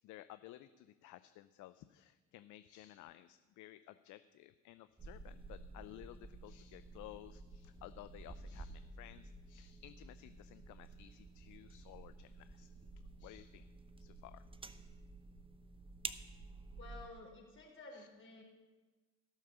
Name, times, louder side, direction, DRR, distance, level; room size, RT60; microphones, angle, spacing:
voice 1, 0.0-12.7 13.2-13.7 14.0-14.4 17.9-18.1, left 15 dB, 50° left, 12 dB, 0.6 m, -55 dB
sound 1, 5.0-17.1, right 3 dB, 15° right, 0.8 m, -51 dB
voice 2, 16.8-18.4, left 2 dB, 30° left, 1 dB, 4.8 m, -53 dB
16.0 x 6.5 x 6.9 m, 1.2 s
hypercardioid pair, 60°, 38 cm